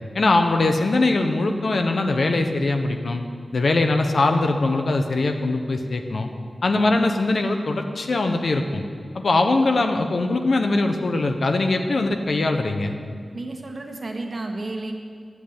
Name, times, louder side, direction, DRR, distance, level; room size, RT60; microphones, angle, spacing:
voice 1, 0.1-3.2 3.5-6.3 6.6-8.8 9.1-12.9, left 2 dB, 70° left, 5 dB, 1.0 m, -21 dB
voice 2, 13.3-14.9, right 2 dB, 50° right, 2 dB, 1.4 m, -32 dB
10.5 x 7.3 x 8.8 m, 2.1 s
wide cardioid pair, 75°, 0 cm